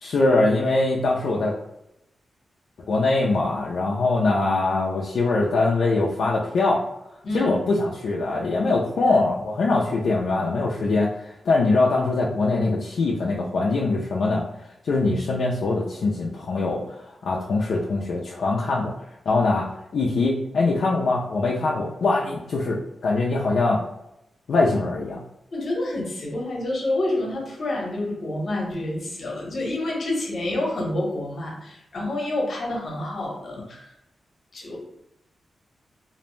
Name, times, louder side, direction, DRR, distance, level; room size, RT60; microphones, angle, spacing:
voice 1, 0.0-1.6 2.9-6.8 7.3-14.4 14.8-18.9 19.3-19.7 19.9-23.8 24.5-25.2, left 3 dB, 70° left, -3 dB, 0.3 m, -22 dB
voice 2, 25.5-33.9 34.5-34.8, left 1 dB, 55° left, -2 dB, 0.8 m, -28 dB
2.5 x 2.0 x 3.0 m, 0.85 s
wide cardioid pair, 145°, 0 cm